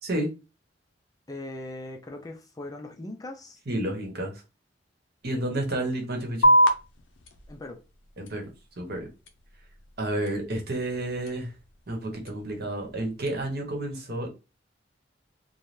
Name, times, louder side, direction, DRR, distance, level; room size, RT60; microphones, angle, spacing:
voice 1, 1.3-3.6 5.4-5.5 7.5-7.8, left 1 dB, 20° left, 0.4 m, -39 dB
voice 2, 3.7-4.4 5.2-6.5 8.2-8.4 8.8-9.1 10.0-11.5 11.9-14.3, right 1 dB, 60° right, 1.0 m, -30 dB
sound 1, 6.4-13.4, equal, 70° left, 0.5 m, -29 dB
3.2 x 2.2 x 2.6 m
head